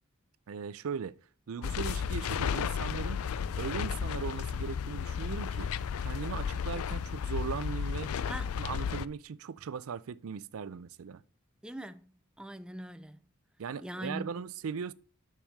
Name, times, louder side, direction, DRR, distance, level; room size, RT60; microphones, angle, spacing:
voice 1, 0.5-1.1 1.5-3.2 3.6-5.7 6.0-8.1 8.6-11.2 13.6-14.9, right 6 dB, 75° right, 0.4 m, -38 dB
sound 1, 1.6-9.1, left 7 dB, 85° left, 0.4 m, -33 dB
voice 2, 8.3-8.6 11.6-13.2 13.8-14.3, equal, 5° right, 0.4 m, -42 dB
10.0 x 6.8 x 3.6 m
head